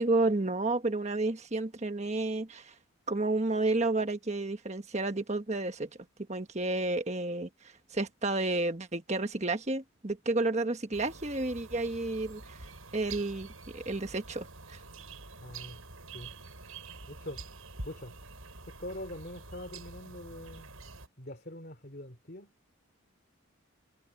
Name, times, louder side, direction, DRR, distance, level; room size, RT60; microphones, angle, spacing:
voice 1, 0.0-2.7 3.1-5.9 6.3-7.5 7.9-12.6 12.9-14.8, right 2 dB, 30° right, 1.3 m, -31 dB
sound 1, 10.9-21.1, right 3 dB, 85° right, 6.9 m, -47 dB
voice 2, 15.4-15.8 16.1-16.3 17.1-17.4 17.8-18.2 18.6-20.7 21.2-22.5, left 1 dB, 45° left, 3.0 m, -43 dB
head